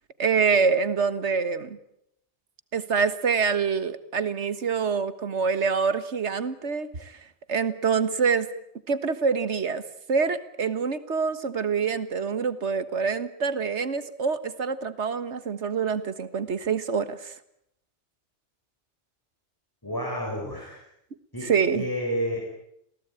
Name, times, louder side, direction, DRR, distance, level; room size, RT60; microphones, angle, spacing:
voice 1, 0.2-1.8 2.7-7.2 7.5-8.5 8.9-9.8 10.1-17.3 21.4-21.9, right 5 dB, 80° right, 12 dB, 1.8 m, -26 dB
voice 2, 19.8-20.8 21.3-22.4, equal, 20° left, -1 dB, 6.0 m, -30 dB
28.0 x 17.5 x 9.0 m, 0.77 s
omnidirectional pair, 1.2 m